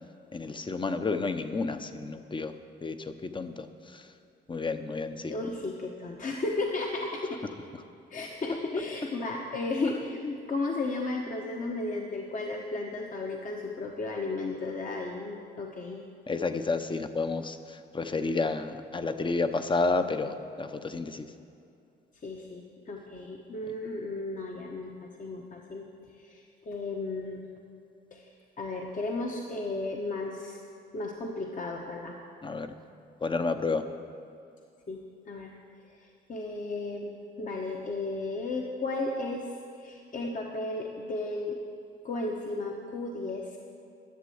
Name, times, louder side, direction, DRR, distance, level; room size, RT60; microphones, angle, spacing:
voice 1, 0.3-2.5 2.8-3.5 4.5-5.3 16.3-17.6 17.9-21.3 32.4-32.7 33.2-33.8, left 3 dB, 25° left, 9 dB, 0.8 m, -30 dB
voice 2, 5.3-7.5 8.1-16.0 22.2-25.9 26.2-27.5 28.1-28.2 28.6-30.6 30.9-32.2 34.9-35.0 35.3-35.5 35.9-39.5 39.8-41.6 42.0-43.6, left 2 dB, 40° left, 0 dB, 1.2 m, -34 dB
12.0 x 7.5 x 7.9 m, 2.5 s
cardioid pair, 90°, 20 cm